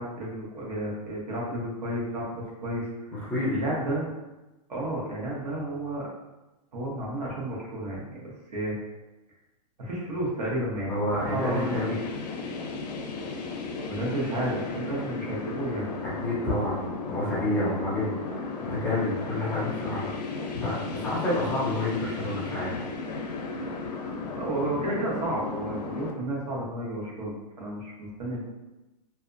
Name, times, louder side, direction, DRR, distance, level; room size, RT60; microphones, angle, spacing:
voice 1, 0.0-4.1 4.7-6.1 6.7-8.7 9.8-12.0 13.8-15.9 24.3-28.4, right 1 dB, 75° right, -5 dB, 1.1 m, -32 dB
voice 2, 3.2-3.6 10.9-11.9 16.0-20.1 20.5-22.8, left 1 dB, 10° left, -8 dB, 0.6 m, -29 dB
sound 1, 11.1-26.1, left 3 dB, 80° left, 0.6 m, -35 dB
2.6 x 2.3 x 2.5 m, 1.0 s
hypercardioid pair, 150°, 21 cm